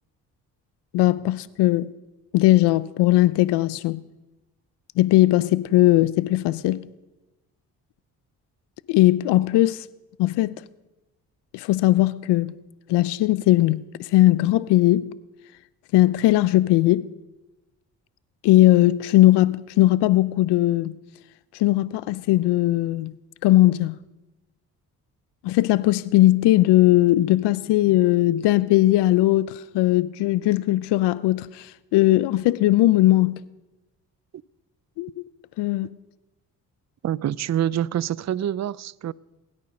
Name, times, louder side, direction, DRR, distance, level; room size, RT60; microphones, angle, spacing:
voice 1, 0.9-1.9 2.3-4.0 5.0-6.9 8.9-9.9 10.2-10.5 11.5-12.5 12.9-15.1 15.9-17.1 18.4-21.0 21.5-23.1 23.4-24.0 25.4-33.4 35.0-35.1 35.6-35.9, left 16 dB, 85° left, 0.6 m, -19 dB
voice 2, 37.0-39.1, right 11 dB, 45° right, 0.5 m, -26 dB
20.0 x 12.0 x 5.4 m
supercardioid pair, 55°, 40 cm